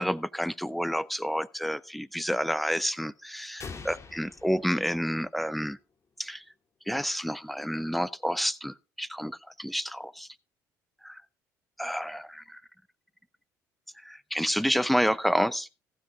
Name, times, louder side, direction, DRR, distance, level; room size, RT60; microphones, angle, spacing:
voice 1, 0.0-5.8 6.2-6.4 6.9-10.3 11.0-11.2 11.8-12.6 14.0-15.7, equal, ahead, 0.7 m, -29 dB
sound 1, 3.6-5.5, left 4 dB, 35° left, 2.1 m, -44 dB
15.0 x 7.5 x 4.9 m
hypercardioid pair, 60°, 9 cm